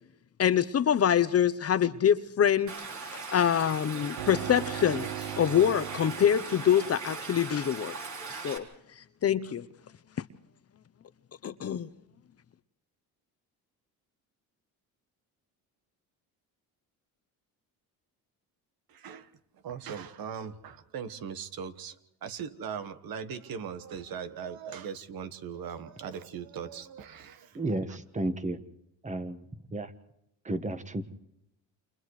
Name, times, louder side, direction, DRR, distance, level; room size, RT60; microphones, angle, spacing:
voice 1, 0.4-2.8 3.0-8.0 8.4-8.7 9.2-9.7 11.4-11.9, left 9 dB, 40° left, 13 dB, 0.8 m, -25 dB
Stream, 2.7-8.6, right 4 dB, 45° right, 3.7 m, -40 dB
sound 1, 4.2-7.6, right 12 dB, 85° right, 1.0 m, -39 dB
voice 2, 18.9-19.3 19.6-22.0 22.2-27.6, right 7 dB, 65° right, 10 dB, 1.5 m, -39 dB
voice 3, 27.5-28.6 29.0-29.4 29.7-29.9 30.4-31.0, right 2 dB, 20° right, 9 dB, 1.5 m, -32 dB
29.0 x 28.0 x 3.2 m, 0.81 s
cardioid pair, 100°, 38 cm